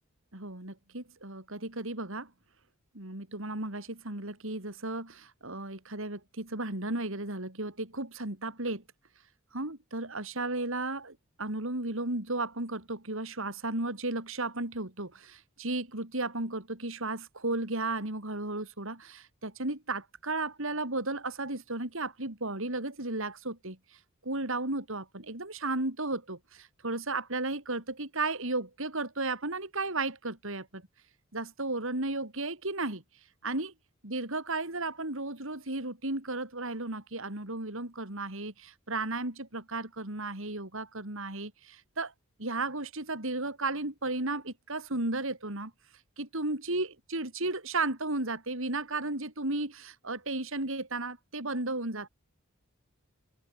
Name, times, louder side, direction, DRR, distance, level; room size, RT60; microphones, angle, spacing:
voice 1, 0.3-2.3 2.9-8.8 9.5-23.8 24.2-30.8 31.3-33.0 33.4-33.7 34.0-42.1 42.4-45.7 46.2-52.1, right 2 dB, 65° right, 4.3 m, -34 dB
open air
head